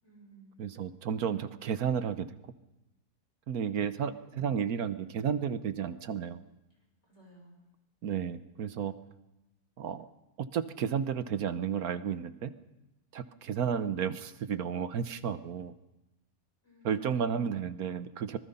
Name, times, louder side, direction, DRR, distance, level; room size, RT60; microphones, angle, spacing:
voice 1, 0.0-0.8 6.7-7.6 16.6-17.2, right 2 dB, 45° left, 0 dB, 6.3 m, -58 dB
voice 2, 0.6-2.3 3.5-6.4 8.0-8.9 9.8-10.1 10.4-12.5 13.1-15.7 16.8-18.4, right 7 dB, 70° right, 12 dB, 1.4 m, -32 dB
25.0 x 19.5 x 5.5 m, 0.97 s
omnidirectional pair, 1.6 m